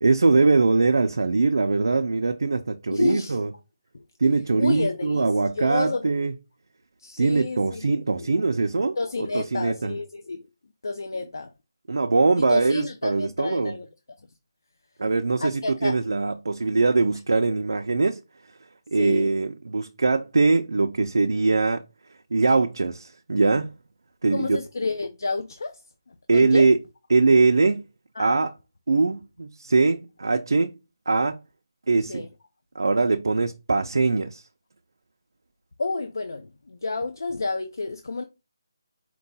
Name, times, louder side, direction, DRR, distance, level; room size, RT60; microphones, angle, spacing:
voice 1, 0.0-3.5 4.2-6.3 7.2-9.9 11.9-13.7 15.0-18.2 18.9-21.8 22.3-23.7 24.2-24.6 26.3-26.8 27.1-27.8 28.2-28.5 28.9-30.8 31.1-31.4 31.9-32.2 32.8-34.4, right 3 dB, 70° right, 0.4 m, -22 dB
voice 2, 2.9-3.4 3.9-4.0 4.6-6.1 7.0-8.3 8.9-10.4 10.8-11.5 12.5-13.9 15.4-16.0 19.0-19.3 24.3-25.8 26.1-26.7 28.2-28.4 32.1-32.3 35.8-38.2, left 3 dB, 60° left, 0.4 m, -30 dB
4.5 x 2.2 x 4.0 m
hypercardioid pair, 180°, 2 cm